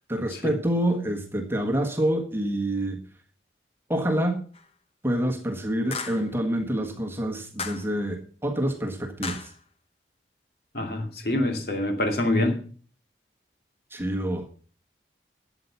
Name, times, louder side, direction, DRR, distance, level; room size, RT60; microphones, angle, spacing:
voice 1, 0.1-3.0 3.9-4.4 5.0-9.5 13.9-14.7, right 1 dB, 15° right, 2 dB, 1.5 m, -27 dB
sound 1, 4.5-4.7 5.9-6.3 7.6-8.0 9.2-9.6, left 4 dB, 35° left, 1.1 m, -35 dB
voice 2, 10.7-12.6, left 1 dB, 55° left, 3 dB, 2.4 m, -25 dB
13.0 x 8.2 x 5.7 m, 0.42 s
head